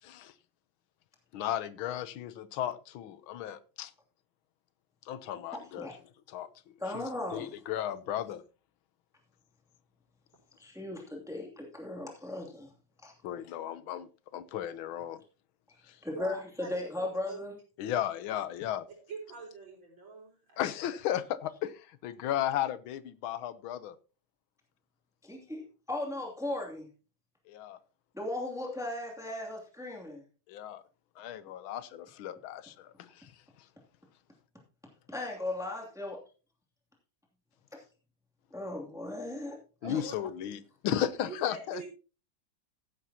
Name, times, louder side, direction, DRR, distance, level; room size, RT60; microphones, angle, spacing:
voice 1, 0.0-0.3 1.3-3.9 5.1-5.9 6.3-6.5 6.9-8.4 13.2-15.2 15.9-16.0 17.8-18.9 20.6-24.0 27.5-27.8 30.5-30.8 31.2-33.3 39.8-41.8, left 11 dB, 90° left, 1.6 m, -35 dB
voice 2, 6.8-7.5 10.6-12.7 13.0-13.1 16.0-17.5 25.2-26.9 28.1-30.2 35.1-36.2 38.5-39.6 39.9-40.0, left 2 dB, ahead, 2.5 m, -37 dB
voice 3, 16.1-16.7 17.3-17.4 17.8-18.0 19.1-20.6 39.8-40.1 41.2-41.9, right 4 dB, 70° right, 5.3 m, -44 dB
15.0 x 11.0 x 2.9 m
omnidirectional pair, 2.2 m